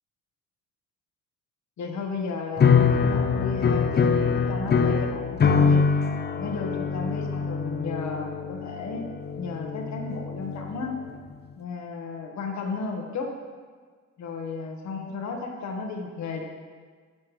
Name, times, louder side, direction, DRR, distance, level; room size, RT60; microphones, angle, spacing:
voice 1, 1.8-5.8 6.4-9.1 9.4-11.0 11.6-13.3 14.2-16.4, left 4 dB, 65° left, 2 dB, 1.5 m, -34 dB
sound 1, 2.6-10.9, left 5 dB, 35° left, 0.6 m, -24 dB
11.0 x 7.2 x 3.3 m, 1.5 s
cardioid pair, 90°, 30 cm